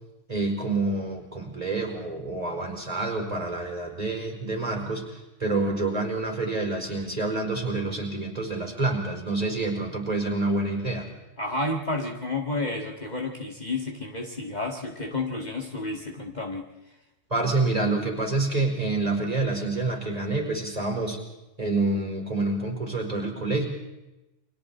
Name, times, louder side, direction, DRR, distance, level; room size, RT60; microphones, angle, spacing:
voice 1, 0.3-11.1 17.3-21.2 21.6-23.7, right 2 dB, 30° right, 1 dB, 5.1 m, -27 dB
voice 2, 11.4-16.7, left 2 dB, 35° left, 1 dB, 2.0 m, -31 dB
29.5 x 24.5 x 4.4 m, 0.98 s
omnidirectional pair, 1.3 m